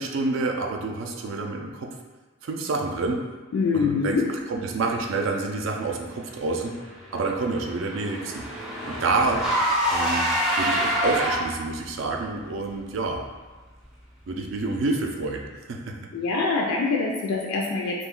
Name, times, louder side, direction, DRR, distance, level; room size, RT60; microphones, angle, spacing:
voice 1, 0.0-2.0 2.4-3.3 3.7-4.2 4.5-6.8 7.1-8.5 8.9-9.4 9.9-13.3 14.3-16.1, right 3 dB, 65° right, 2 dB, 0.4 m, -28 dB
voice 2, 3.5-4.3 16.1-18.1, left 4 dB, 80° left, -2 dB, 0.3 m, -24 dB
Car / Engine, 6.7-11.8, equal, ahead, 0.5 m, -26 dB
2.4 x 2.2 x 3.6 m, 1.3 s
head